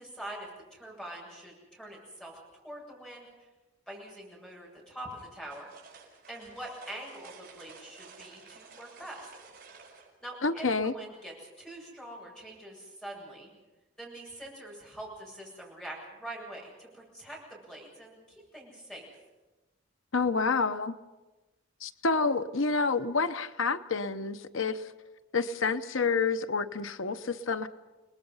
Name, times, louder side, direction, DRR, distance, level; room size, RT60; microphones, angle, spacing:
voice 1, 0.0-3.5 3.9-5.7 6.3-9.3 10.2-13.5 14.0-19.2, right 1 dB, 5° left, -3 dB, 7.6 m, -44 dB
sound 1, 5.1-10.1, right 4 dB, 50° right, 6.2 m, -52 dB
voice 2, 10.4-10.9 20.1-20.9 21.8-24.8 25.3-27.7, left 4 dB, 80° left, 10 dB, 0.9 m, -28 dB
30.0 x 20.0 x 5.6 m, 1.1 s
head